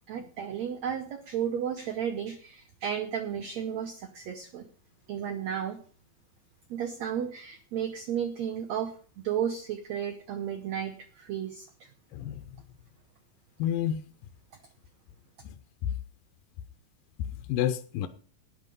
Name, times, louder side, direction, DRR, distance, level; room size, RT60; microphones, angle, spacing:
voice 1, 0.1-4.7 5.1-5.8 6.7-11.7 12.2-12.3, right 8 dB, 80° right, 1.6 m, -33 dB
voice 2, 12.1-12.6 13.6-14.0 15.8-16.0 17.2-18.1, left 10 dB, 75° left, 2.3 m, -30 dB
13.5 x 9.7 x 5.4 m
omnidirectional pair, 4.3 m